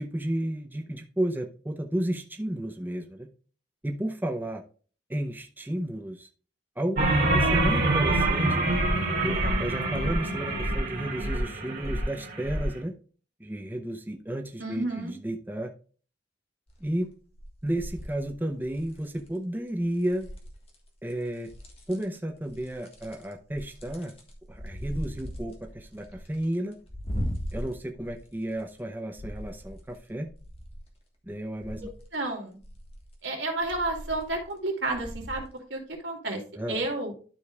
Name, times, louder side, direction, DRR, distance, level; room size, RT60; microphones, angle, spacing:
voice 1, 0.0-3.3 3.8-4.6 5.1-6.3 6.8-8.6 9.2-13.0 13.4-15.7 16.8-17.1 17.6-20.3 21.0-21.5 21.9-24.1 24.5-26.8 27.5-30.3 31.3-31.8 36.6-36.8, right 1 dB, 10° right, 3 dB, 0.6 m, -32 dB
sound 1, 7.0-12.7, right 2 dB, 50° right, 2.2 m, -25 dB
voice 2, 14.6-15.1 31.8-32.6 33.2-36.4 36.7-37.2, right 2 dB, 90° right, 1 dB, 2.4 m, -31 dB
swing ropes, 16.7-17.0 17.3-19.3 20.0-20.7 21.1-22.2 22.5-28.8 29.2-30.9 31.3-32.0 32.6-33.2 33.6-34.5 34.9-35.5 35.9-36.0, equal, 35° left, 1.5 m, -39 dB
12.5 x 5.0 x 2.4 m, 0.40 s
head